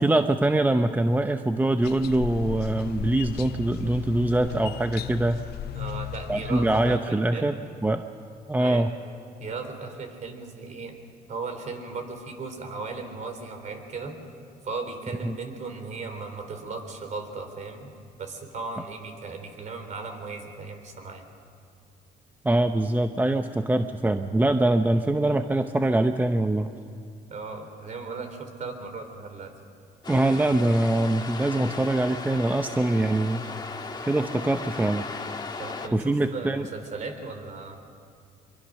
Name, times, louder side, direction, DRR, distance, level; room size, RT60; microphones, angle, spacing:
voice 1, 0.0-5.4 6.3-7.6 7.8-8.1 8.5-8.9 15.2-15.4 22.4-26.7 30.1-33.4 34.0-35.1 35.9-36.7, right 1 dB, 10° right, 7 dB, 0.7 m, -23 dB
sound 1, 1.8-7.0, left 11 dB, 70° left, 0.7 m, -36 dB
voice 2, 5.7-7.5 8.6-8.9 9.4-10.9 11.3-14.2 14.6-17.9 18.2-21.2 27.3-29.5 35.6-37.8, right 4 dB, 45° right, 6 dB, 3.7 m, -36 dB
sound 2, 30.0-35.9, left 4 dB, 25° left, 1.7 m, -36 dB
24.5 x 23.5 x 6.4 m, 2.3 s
cardioid pair, 110°, 17 cm